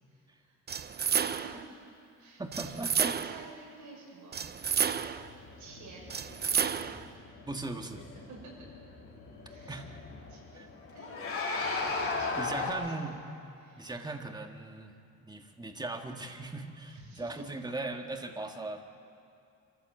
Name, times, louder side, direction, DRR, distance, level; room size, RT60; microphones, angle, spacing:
voice 1, 0.1-0.6 1.0-1.5 2.1-4.4 5.5-6.1 8.1-8.5 9.4-9.8 10.3-10.7 10.9-11.6 12.2-13.1 13.6-13.9 16.9-17.5, right 3 dB, 70° right, -2 dB, 6.5 m, -51 dB
sound 1, 0.7-1.7 2.5-3.5 4.3-5.3 6.1-7.1, right 7 dB, 30° right, 0.7 m, -31 dB
voice 2, 2.4-3.1 7.5-8.1 9.7-10.0 10.5-10.7 12.4-13.2 13.8-14.9 15.2-18.8, right 2 dB, 15° right, 5 dB, 1.6 m, -38 dB
sound 2, 4.6-12.7, left 3 dB, 45° left, 3.7 m, -38 dB
25.5 x 14.0 x 7.9 m, 2.5 s
cardioid pair, 115°, 31 cm